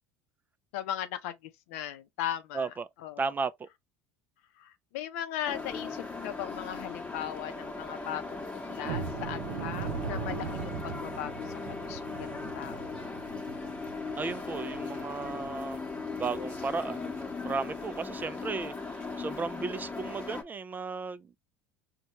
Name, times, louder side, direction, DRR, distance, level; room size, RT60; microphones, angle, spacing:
voice 1, 0.7-3.3 4.6-13.0, left 11 dB, 75° left, 0.6 m, -38 dB
voice 2, 2.5-2.9 3.2-3.7 14.2-15.8 16.2-17.2 17.4-18.7 19.2-21.4, right 4 dB, 25° right, 0.4 m, -34 dB
sound 1, 5.5-20.4, left 3 dB, 20° left, 1.0 m, -38 dB
sound 2, 8.8-15.6 15.9-16.1 16.5-16.7 17.1-17.3, right 7 dB, 80° right, 0.5 m, -40 dB
4.2 x 2.3 x 2.9 m
hypercardioid pair, 85°, 8 cm